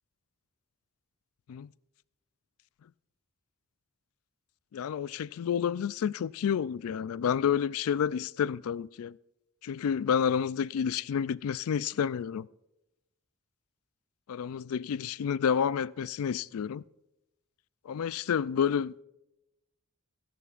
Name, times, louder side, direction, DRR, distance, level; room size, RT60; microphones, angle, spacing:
voice 1, 4.7-9.2 9.6-12.5 14.3-16.8 17.8-19.0, left 7 dB, 75° left, 0.3 m, -29 dB
28.0 x 11.0 x 2.5 m
head